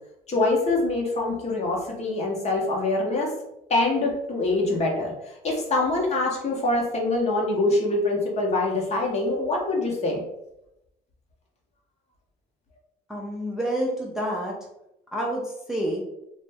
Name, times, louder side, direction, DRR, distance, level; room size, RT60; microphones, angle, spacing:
voice 1, 0.3-3.3 3.7-10.2, left 2 dB, 40° left, -1 dB, 0.8 m, -24 dB
voice 2, 13.1-14.5 15.1-16.0, right 1 dB, 5° right, -3 dB, 0.5 m, -28 dB
2.5 x 2.1 x 3.3 m, 0.85 s
cardioid pair, 110°, 17 cm